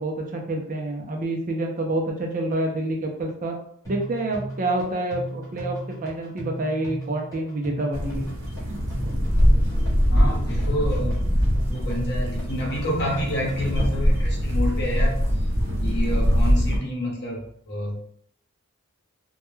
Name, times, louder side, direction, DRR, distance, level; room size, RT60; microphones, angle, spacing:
voice 1, 0.0-3.6 3.9-8.2, right 2 dB, 40° right, 1 dB, 0.4 m, -27 dB
sound 1, 3.8-13.8, right 1 dB, 15° left, 0.8 m, -37 dB
sound 2, 7.9-16.8, equal, 70° right, 0.8 m, -22 dB
voice 2, 10.1-11.2 11.4-15.1 15.8-17.4 17.7-18.1, equal, 50° left, -2 dB, 0.8 m, -29 dB
2.2 x 2.1 x 3.0 m, 0.66 s
head